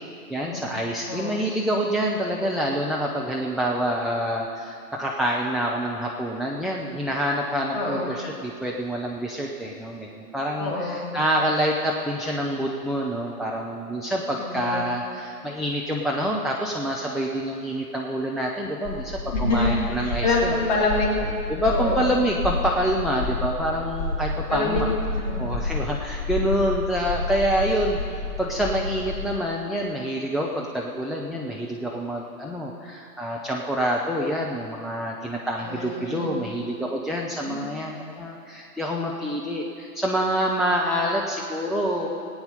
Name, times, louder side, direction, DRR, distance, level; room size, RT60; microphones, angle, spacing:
voice 1, 0.3-20.5 21.2-24.9 25.4-28.0 28.4-42.1, equal, ahead, -3 dB, 0.3 m, -27 dB
voice 2, 7.7-8.1 10.6-11.1 14.4-14.8 19.3-21.2 21.7-22.0 24.3-25.4 35.6-36.3 37.5-37.6, left 2 dB, 25° left, -2 dB, 2.3 m, -26 dB
sound 1, 18.8-29.3, left 2 dB, 45° left, 2.6 m, -30 dB
18.5 x 9.1 x 5.3 m, 2.4 s
hypercardioid pair, 165°, 48 cm